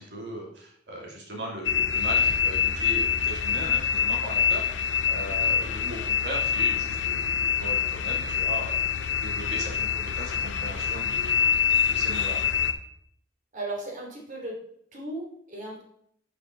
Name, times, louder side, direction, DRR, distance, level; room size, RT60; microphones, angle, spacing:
voice 1, 0.0-12.4, equal, 65° right, -2 dB, 2.9 m, -38 dB
sound 1, 1.6-12.7, left 8 dB, 85° left, 0.8 m, -25 dB
voice 2, 13.5-14.6 14.9-15.8, right 2 dB, 45° right, -1 dB, 2.9 m, -36 dB
10.0 x 6.0 x 4.0 m, 0.67 s
head